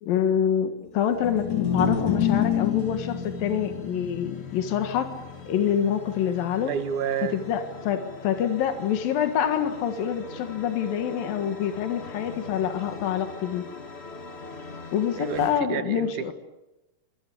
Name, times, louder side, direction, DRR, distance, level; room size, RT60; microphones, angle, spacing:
voice 1, 0.0-5.1 5.5-6.7 7.3-13.7 14.9-16.3, left 9 dB, 80° left, 7 dB, 3.4 m, -26 dB
sound 1, 1.0-15.6, left 3 dB, 45° left, 0.7 m, -43 dB
sound 2, 1.1-7.5, left 8 dB, 65° left, 4.3 m, -29 dB
voice 2, 6.7-7.4 15.2-16.3, right 8 dB, 65° right, 11 dB, 2.5 m, -29 dB
25.5 x 20.5 x 8.6 m, 0.99 s
omnidirectional pair, 4.0 m